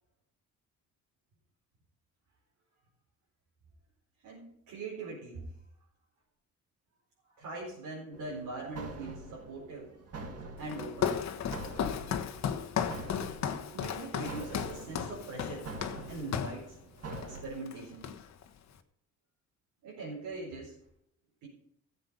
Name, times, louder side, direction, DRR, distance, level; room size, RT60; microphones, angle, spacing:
voice 1, 4.2-5.5 7.4-9.9 10.6-11.2 13.7-15.7 16.1-16.8 17.3-18.2 19.8-20.8 21.4-21.5, right 3 dB, 90° right, -6 dB, 4.7 m, -41 dB
sound 1, 8.1-17.4, right 3 dB, 55° right, 2.1 m, -46 dB
Walk footsteps, 10.7-16.7 17.1-17.4 17.7-18.5, left 8 dB, 60° left, 1.2 m, -35 dB
14.5 x 7.9 x 5.5 m, 0.75 s
cardioid pair, 90°, 30 cm